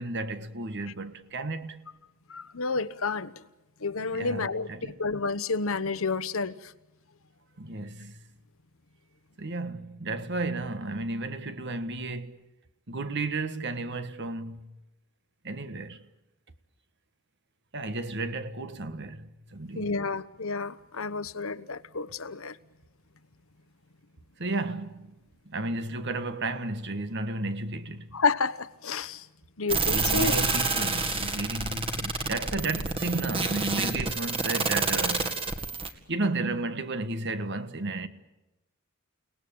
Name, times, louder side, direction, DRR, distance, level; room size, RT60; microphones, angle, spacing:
voice 1, 0.0-1.8 4.1-5.0 7.6-8.2 9.4-12.5 12.9-14.8 15.4-16.0 17.7-19.9 24.4-25.1 25.4-28.1 29.9-35.4 36.1-38.1, right 2 dB, 55° right, 1.5 m, -33 dB
voice 2, 2.3-3.3 3.8-6.7 19.7-22.6 28.1-29.3 29.6-30.4, left 4 dB, 65° left, 1.0 m, -30 dB
sound 1, 29.7-35.9, right 4 dB, 25° right, 2.1 m, -28 dB
29.5 x 19.0 x 8.7 m
head